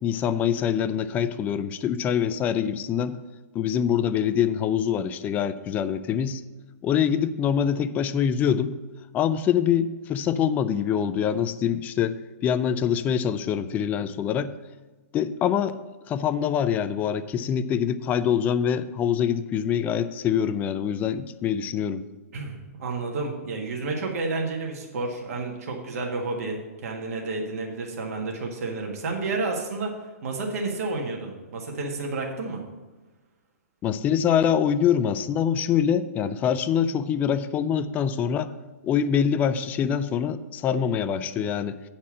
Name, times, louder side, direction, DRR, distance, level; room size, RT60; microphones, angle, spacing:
voice 1, 0.0-3.2 3.5-6.4 6.8-8.7 9.1-14.5 15.1-15.8 16.1-22.0 33.8-38.5 38.8-41.8, left 8 dB, 20° left, 12 dB, 0.3 m, -24 dB
voice 2, 22.3-32.6, right 3 dB, 65° right, 1 dB, 1.6 m, -31 dB
8.4 x 4.3 x 7.2 m, 1.2 s
hypercardioid pair, 145°, 9 cm